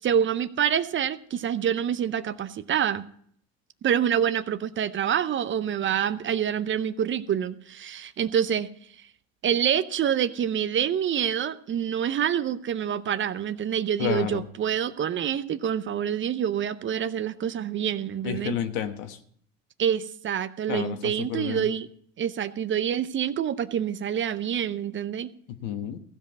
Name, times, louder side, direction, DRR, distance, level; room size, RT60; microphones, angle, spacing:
voice 1, 0.0-3.1 3.8-8.7 9.4-18.6 19.8-21.9 22.2-25.3, right 9 dB, 30° right, 14 dB, 0.6 m, -26 dB
voice 2, 14.0-14.5 18.2-19.2 20.7-21.7 25.5-26.0, left 10 dB, 75° left, 8 dB, 1.4 m, -30 dB
15.5 x 5.2 x 8.0 m, 0.63 s
hypercardioid pair, 90°, 38 cm